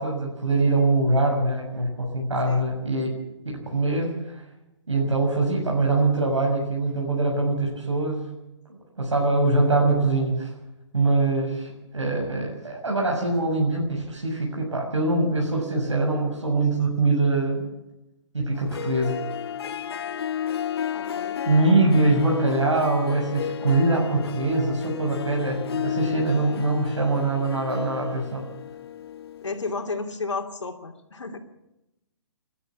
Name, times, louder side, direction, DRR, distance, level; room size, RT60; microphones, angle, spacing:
voice 1, 0.0-3.1 3.6-4.4 4.9-8.3 9.0-10.5 10.9-17.6 18.3-19.2 21.4-28.4, right 2 dB, 80° right, -1 dB, 6.6 m, -23 dB
Harp, 18.5-29.8, left 9 dB, 55° left, 1.4 m, -32 dB
voice 2, 20.9-21.4 29.4-31.4, left 3 dB, 80° left, 4 dB, 3.0 m, -32 dB
29.0 x 13.0 x 7.3 m, 0.92 s
figure-of-eight pair, 135°, 15 cm